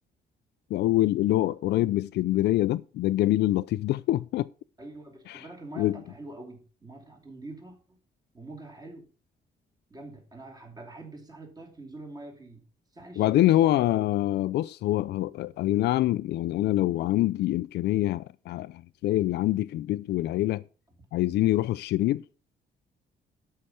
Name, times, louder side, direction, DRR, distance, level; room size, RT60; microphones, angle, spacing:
voice 1, 0.7-4.5 5.3-5.4 5.8-6.0 13.2-20.6 21.1-22.2, left 15 dB, 85° left, 0.4 m, -25 dB
voice 2, 4.8-8.0 8.3-9.1 9.9-12.6 12.9-14.1, right 2 dB, 20° right, 2.7 m, -45 dB
12.0 x 5.7 x 6.1 m
cardioid pair, 175°, 17 cm